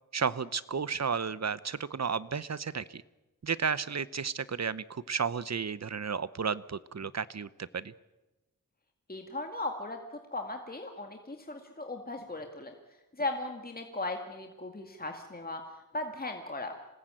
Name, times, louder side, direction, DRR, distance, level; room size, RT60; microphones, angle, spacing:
voice 1, 0.1-3.0 3.4-7.9, right 6 dB, 50° right, 17 dB, 1.0 m, -33 dB
voice 2, 9.1-10.0 10.3-12.7 13.2-15.6 15.9-16.7, left 2 dB, 25° left, 4 dB, 2.2 m, -37 dB
26.5 x 19.5 x 9.1 m, 1.0 s
wide cardioid pair, 80°, 33 cm